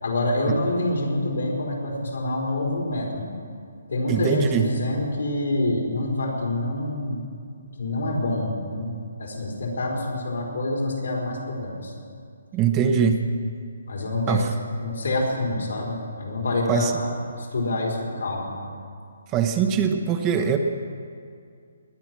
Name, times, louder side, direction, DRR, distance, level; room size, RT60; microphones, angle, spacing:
voice 1, 0.0-3.3 3.9-7.3 7.8-8.9 9.2-11.9 13.9-14.4 14.8-17.1 17.4-18.5, left 2 dB, 80° left, -1 dB, 4.5 m, -26 dB
voice 2, 4.1-4.7 12.5-13.2 14.3-14.5 16.7-16.9 19.3-20.6, right 7 dB, 20° right, 5 dB, 0.9 m, -22 dB
20.5 x 9.3 x 6.1 m, 2.3 s
hypercardioid pair, 155°, 0 cm